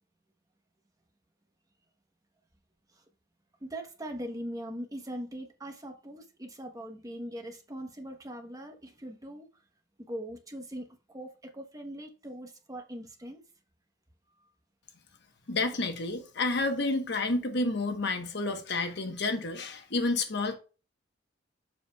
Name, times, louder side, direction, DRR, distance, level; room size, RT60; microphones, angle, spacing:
voice 1, 3.6-9.5 10.0-13.4 14.4-14.5, right 1 dB, 20° right, 1.0 m, -41 dB
voice 2, 15.5-20.6, left 2 dB, 65° left, 1.1 m, -30 dB
7.4 x 6.8 x 2.3 m
head